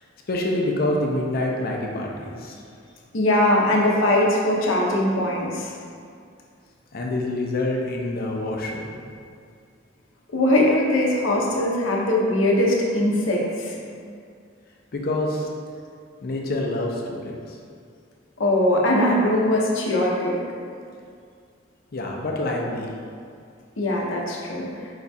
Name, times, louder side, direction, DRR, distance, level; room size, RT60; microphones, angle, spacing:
voice 1, 0.3-2.6 6.9-8.9 14.9-15.5 16.2-17.6 21.9-22.9, left 1 dB, 50° left, 0 dB, 0.5 m, -26 dB
voice 2, 3.1-5.7 10.3-13.7 18.4-20.4 23.8-24.7, left 1 dB, 85° left, -2 dB, 0.7 m, -21 dB
4.8 x 2.3 x 4.1 m, 2.3 s
head